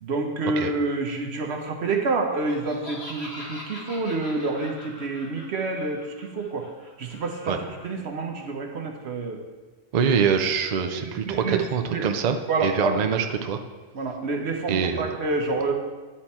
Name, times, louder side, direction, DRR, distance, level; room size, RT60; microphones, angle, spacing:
voice 1, 0.0-6.7 7.0-7.6 7.8-9.4 10.8-12.1 12.5-13.1 13.9-15.7, right 3 dB, 70° right, 3 dB, 1.1 m, -28 dB
Laughter, 2.3-7.9, left 1 dB, 30° left, 1.7 m, -42 dB
voice 2, 9.9-13.6 14.7-15.1, right 6 dB, 55° right, 6 dB, 0.5 m, -24 dB
9.9 x 4.3 x 4.3 m, 1.3 s
omnidirectional pair, 1.1 m